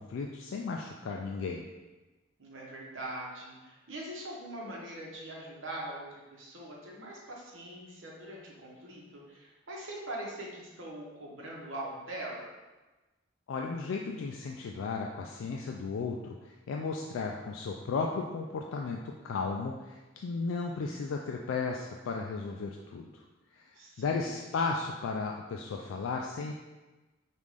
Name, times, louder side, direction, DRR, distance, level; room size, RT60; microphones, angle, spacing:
voice 1, 0.0-1.7 13.5-23.2 23.5-23.7 24.0-26.5, left 4 dB, 80° left, 1 dB, 0.3 m, -35 dB
voice 2, 2.4-12.5 23.7-24.4, right 1 dB, 90° right, -3 dB, 1.0 m, -42 dB
5.3 x 2.5 x 3.2 m, 1.2 s
head